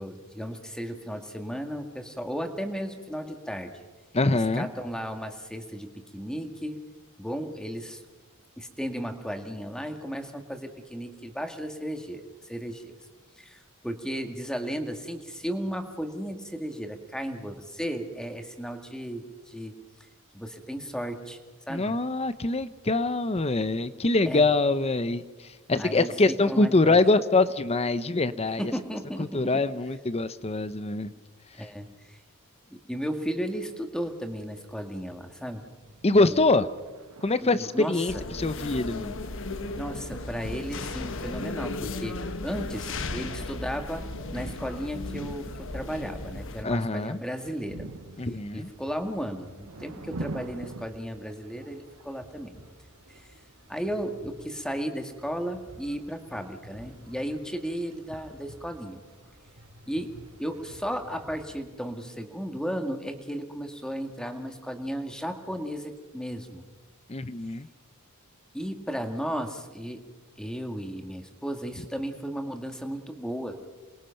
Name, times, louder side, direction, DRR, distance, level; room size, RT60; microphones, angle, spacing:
voice 1, 0.0-3.7 4.3-6.8 7.2-8.0 8.6-13.0 13.4-19.7 20.3-21.4 21.7-22.0 24.3-24.5 25.8-27.0 28.6-29.4 31.5-32.2 32.7-35.7 36.3-36.4 37.4-38.2 39.8-44.0 44.3-47.9 48.2-52.6 53.2-53.3 53.7-59.0 59.9-60.1 60.4-66.6 68.5-70.1 70.4-73.6, equal, 5° left, 5 dB, 1.9 m, -35 dB
voice 2, 4.1-4.7 21.7-28.7 29.2-31.1 36.0-36.7 37.2-39.2 46.6-47.2 48.2-48.7 67.1-67.7, left 2 dB, 30° left, 13 dB, 0.8 m, -24 dB
sound 1, 34.0-50.9, right 2 dB, 90° right, 1.0 m, -46 dB
sound 2, 38.1-46.6, left 3 dB, 60° left, 1.3 m, -36 dB
sound 3, 47.3-61.6, equal, 70° right, 4.1 m, -52 dB
28.0 x 21.5 x 5.8 m, 1.3 s
head